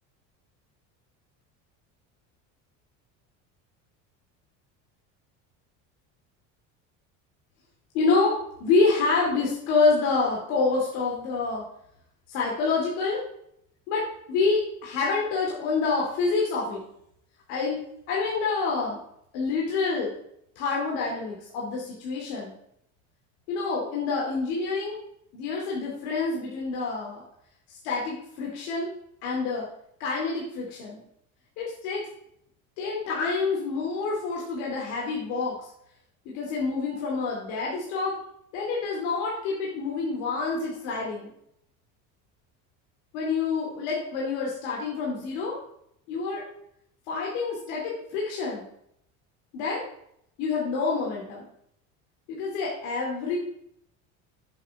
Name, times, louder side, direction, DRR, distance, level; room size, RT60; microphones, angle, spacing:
voice 1, 7.9-11.6 12.3-13.2 13.9-16.8 17.5-19.0 19.3-20.1 20.5-22.5 23.5-25.0 25.3-27.2 27.8-28.9 29.2-29.7 30.0-31.0 31.6-32.1 32.8-35.6 36.2-38.2 38.5-41.3 43.1-45.5 46.1-46.4 47.1-48.7 49.5-49.8 50.4-51.5 52.3-53.4, left 4 dB, 75° left, -3 dB, 3.1 m, -27 dB
9.6 x 8.1 x 4.8 m, 0.72 s
cardioid pair, 175°, 35 cm